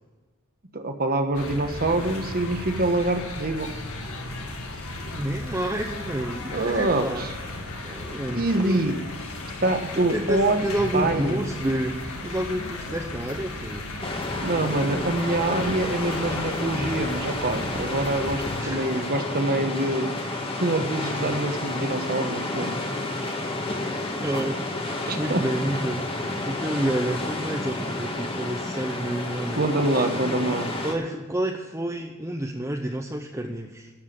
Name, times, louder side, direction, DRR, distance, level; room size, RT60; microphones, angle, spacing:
voice 1, 0.7-3.7 6.5-7.3 8.3-9.0 9.6-10.7 10.9-11.4 14.4-20.1 20.6-22.7 25.1-25.4 29.6-30.7, right 2 dB, 45° right, 6 dB, 1.3 m, -25 dB
sound 1, 1.3-18.6, left 2 dB, 80° left, 2.0 m, -35 dB
voice 2, 5.1-8.9 9.9-12.0 12.2-13.9 18.6-19.1 24.2-29.7 30.8-33.9, right 1 dB, 15° right, 2 dB, 0.7 m, -29 dB
sound 2, 14.0-31.0, left 2 dB, 25° left, 1.6 m, -30 dB
12.0 x 7.4 x 8.7 m, 1.4 s
head